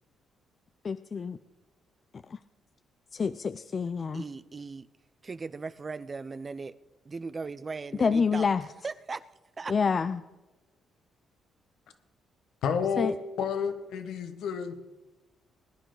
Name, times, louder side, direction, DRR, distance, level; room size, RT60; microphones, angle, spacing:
voice 1, 0.8-1.4 2.3-2.4 3.1-4.2 8.0-8.6 9.7-10.2 13.0-13.1, left 5 dB, 40° left, 12 dB, 0.4 m, -27 dB
voice 2, 4.1-4.9 5.2-6.7 7.1-8.5 8.8-9.3 9.6-9.7, right 4 dB, 30° right, 16 dB, 0.5 m, -38 dB
voice 3, 12.6-14.8, left 6 dB, 80° left, 8 dB, 1.3 m, -30 dB
20.0 x 10.5 x 3.9 m, 1.1 s
cardioid pair, 90°, 0 cm